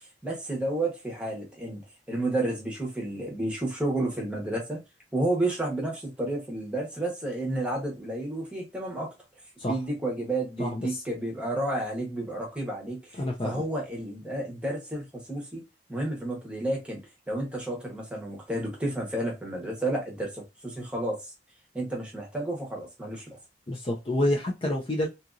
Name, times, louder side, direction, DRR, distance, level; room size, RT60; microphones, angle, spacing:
voice 1, 0.2-4.8 5.1-9.1 9.7-15.6 15.9-17.0 17.3-21.2 21.7-23.4, right 1 dB, 5° right, 0 dB, 0.9 m, -31 dB
voice 2, 10.6-11.0 13.2-13.6 23.7-25.1, left 1 dB, 30° left, -1 dB, 0.5 m, -28 dB
2.9 x 2.6 x 2.4 m, 0.23 s
head